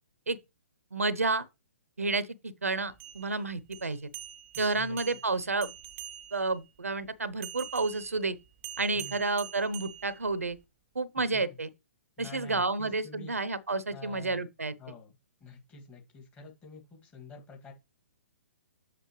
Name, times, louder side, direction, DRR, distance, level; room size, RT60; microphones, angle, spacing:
voice 1, 0.9-1.5 2.0-4.1 4.6-5.7 6.3-8.4 8.8-10.6 10.9-11.7 12.2-14.7, right 3 dB, 75° right, 0.8 m, -30 dB
sound 1, 2.9-6.6 7.4-10.6, right 12 dB, 25° right, 0.4 m, -45 dB
voice 2, 4.5-5.0 8.9-9.3 11.3-11.6 12.2-13.3 13.9-14.4 14.8-15.2 15.4-17.7, left 3 dB, 15° left, 2.2 m, -48 dB
7.6 x 6.3 x 3.2 m
figure-of-eight pair, 125°, 8 cm